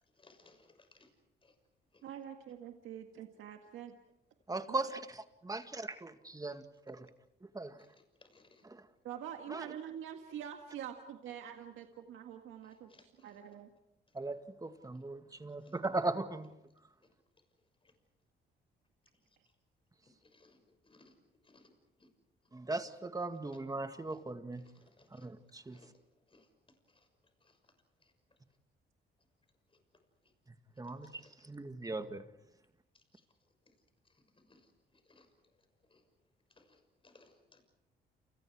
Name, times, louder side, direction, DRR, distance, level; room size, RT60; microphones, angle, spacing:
voice 1, 0.1-1.1 1.4-1.5 1.9-2.0 7.8-8.6 12.6-13.4 14.9-15.0 15.6-15.8 17.8-17.9 20.0-21.1 21.4-21.7 22.0-22.1 24.1-24.2 24.5-25.3 25.7-25.9 26.3-26.5 26.9-27.1 27.4-27.6 28.0-28.1 29.7-29.8 31.0-31.3 32.9-33.2 33.7-33.8 34.0-35.3 35.8-36.0 36.5-37.6, left 3 dB, 25° left, 6 dB, 6.3 m, -65 dB
voice 2, 2.0-4.0 4.7-4.9 9.0-13.7, right 9 dB, 85° right, 5 dB, 1.8 m, -46 dB
voice 3, 4.5-5.0 5.4-7.1 7.5-7.8 9.5-9.6 14.2-16.5 22.5-24.6 25.2-25.8 30.8-31.1 31.5-32.2, right 2 dB, 20° right, 8 dB, 2.0 m, -38 dB
29.5 x 29.0 x 4.9 m, 0.85 s
cardioid pair, 90°, 20 cm